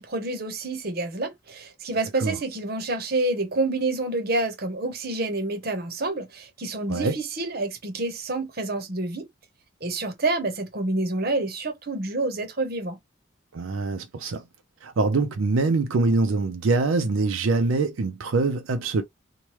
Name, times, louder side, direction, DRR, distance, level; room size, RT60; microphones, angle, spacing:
voice 1, 0.0-9.3 9.8-13.0, right 2 dB, 45° right, 0.8 m, -28 dB
voice 2, 13.5-14.4 14.8-19.0, right 3 dB, 80° right, 0.5 m, -24 dB
3.1 x 2.2 x 2.9 m
head